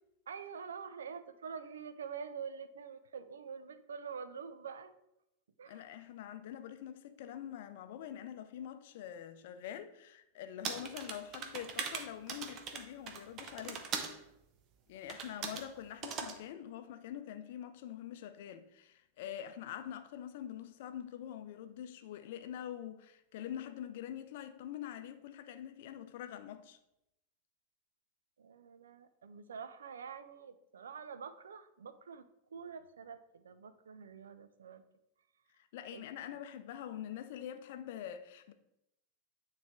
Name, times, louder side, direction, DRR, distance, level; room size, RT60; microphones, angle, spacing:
voice 1, 0.3-4.9 5.6-5.9 28.4-34.8 35.9-36.0, right 6 dB, 65° right, 0.4 m, -46 dB
voice 2, 5.7-13.9 14.9-26.8 35.6-38.5, left 10 dB, 50° left, 0.5 m, -45 dB
sound 1, 10.6-14.2 15.1-15.7 16.0-16.4, right 6 dB, 35° right, 0.7 m, -40 dB
9.1 x 3.2 x 3.6 m
figure-of-eight pair, 90°, 0 cm